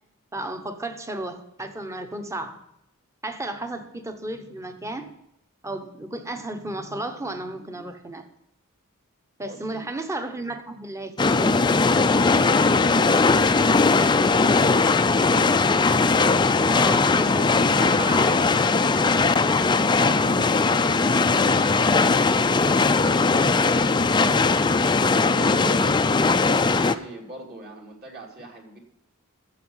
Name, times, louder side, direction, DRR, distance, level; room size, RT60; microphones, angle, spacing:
voice 1, 0.3-2.6 3.2-5.1 5.6-8.3 9.4-11.6 16.7-18.6, right 1 dB, 15° right, 7 dB, 1.0 m, -33 dB
voice 2, 9.5-9.8 19.8-25.9 26.7-28.8, right 2 dB, 45° right, 0 dB, 2.8 m, -41 dB
sound 1, 11.2-26.9, left 4 dB, 20° left, 0.4 m, -19 dB
14.0 x 7.3 x 5.6 m, 0.83 s
head